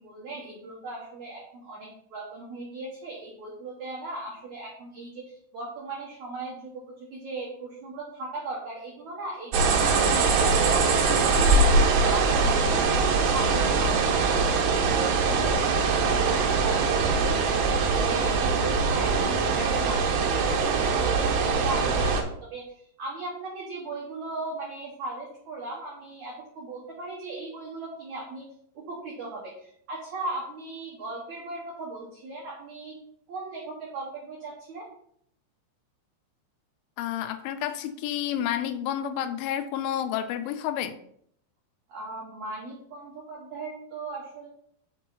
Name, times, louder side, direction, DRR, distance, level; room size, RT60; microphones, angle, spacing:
voice 1, 0.0-17.4 17.8-20.0 20.3-28.5 28.7-32.9 33.3-34.9 41.9-44.5, right 2 dB, 90° right, -3 dB, 1.6 m, -38 dB
sound 1, 9.5-22.2, right 4 dB, 70° right, 3.1 m, -22 dB
voice 2, 37.0-40.9, left 10 dB, 85° left, 10 dB, 3.1 m, -30 dB
6.5 x 5.5 x 4.2 m, 0.66 s
omnidirectional pair, 5.5 m